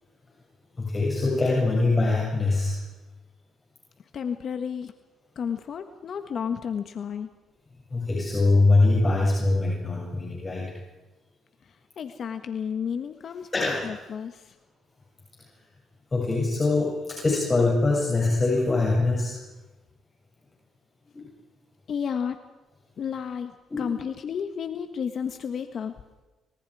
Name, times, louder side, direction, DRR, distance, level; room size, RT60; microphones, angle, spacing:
voice 1, 0.7-2.8 7.9-10.8 13.5-13.9 16.1-19.4 21.1-21.3 23.7-23.9, left 3 dB, 25° left, -2 dB, 7.6 m, -23 dB
voice 2, 4.1-4.9 5.3-7.3 12.0-14.5 21.9-22.4 23.0-26.1, left 7 dB, 55° left, 8 dB, 1.6 m, -32 dB
27.5 x 26.0 x 5.0 m, 1.1 s
cardioid pair, 90°, 0 cm